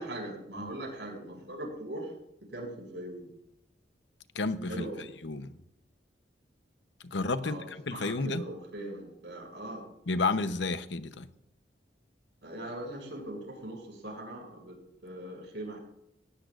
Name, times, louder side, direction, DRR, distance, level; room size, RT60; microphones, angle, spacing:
voice 1, 0.0-2.1 2.5-3.2 4.7-5.1 7.4-9.9 12.4-14.8 15.0-15.8, right 1 dB, 85° right, 6.2 m, -40 dB
voice 2, 4.3-5.6 7.0-8.4 10.1-11.3, left 3 dB, 85° left, 0.9 m, -31 dB
18.5 x 18.0 x 2.5 m
head